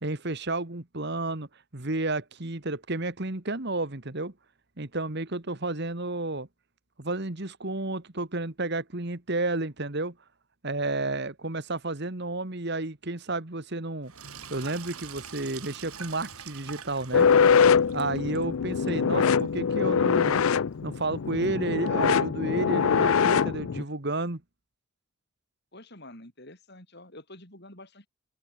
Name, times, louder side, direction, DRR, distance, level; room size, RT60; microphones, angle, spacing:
voice 1, 0.0-1.5 1.7-4.3 4.8-6.5 7.0-10.1 10.6-14.1 14.5-17.3 17.9-20.5 20.8-24.4, right 2 dB, 50° right, 1.7 m, -31 dB
Sink (filling or washing), 14.0-21.9, right 7 dB, 85° right, 7.7 m, -46 dB
sound 1, 17.1-23.8, left 6 dB, 70° left, 0.5 m, -23 dB
voice 2, 25.7-28.1, left 1 dB, 50° left, 7.1 m, -48 dB
head